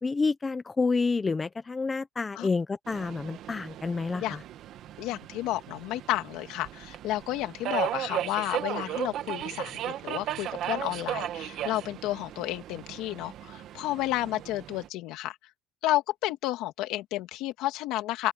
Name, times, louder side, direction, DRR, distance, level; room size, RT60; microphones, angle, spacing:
voice 1, 0.0-4.4, left 4 dB, 15° left, 0.8 m, -29 dB
Subway metro underground, 2.9-14.9, right 12 dB, 55° right, 2.0 m, -36 dB
voice 2, 5.0-15.4 15.8-18.3, left 16 dB, 70° left, 2.6 m, -31 dB
open air
cardioid pair, 145°, 0 cm